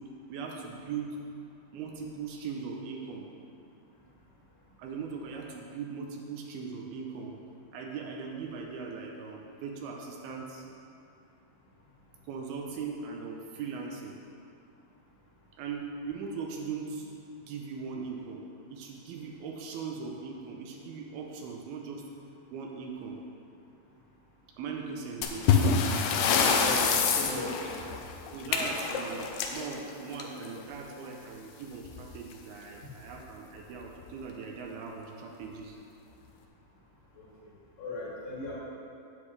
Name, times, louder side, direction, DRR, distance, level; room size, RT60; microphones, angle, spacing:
voice 1, 0.3-1.2 1.7-3.3 4.8-7.3 7.7-10.6 12.2-14.2 15.6-17.1 17.4-22.0 22.5-23.2 24.6-25.5 28.3-35.8, right 5 dB, 80° right, 0 dB, 2.5 m, -39 dB
sound 1, 25.2-30.6 31.9-32.0 32.3-32.4 33.1-33.2 33.8-34.1, left 5 dB, 85° left, 2.6 m, -27 dB
voice 2, 26.2-27.7 37.1-37.2 37.8-38.5, left 1 dB, 60° left, -7 dB, 2.9 m, -36 dB
9.9 x 8.5 x 3.3 m, 2.6 s
omnidirectional pair, 4.6 m